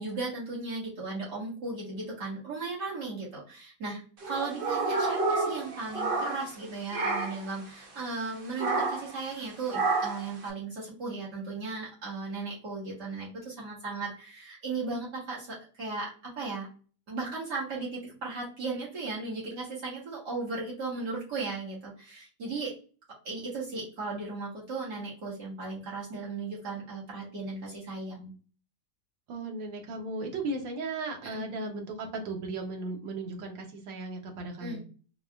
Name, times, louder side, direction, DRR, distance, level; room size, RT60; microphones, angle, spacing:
voice 1, 0.0-4.0 4.3-16.7 17.1-22.7 23.2-28.3 31.2-31.4 34.6-34.8, right 3 dB, 65° right, -7 dB, 2.1 m, -36 dB
sound 1, 4.2-6.6 6.9-7.5 8.6-9.1 9.7-10.3, right 3 dB, 50° right, 0.6 m, -29 dB
voice 2, 29.3-34.8, right 2 dB, 90° right, 2 dB, 1.6 m, -36 dB
4.7 x 2.4 x 2.3 m, 0.38 s
omnidirectional pair, 2.0 m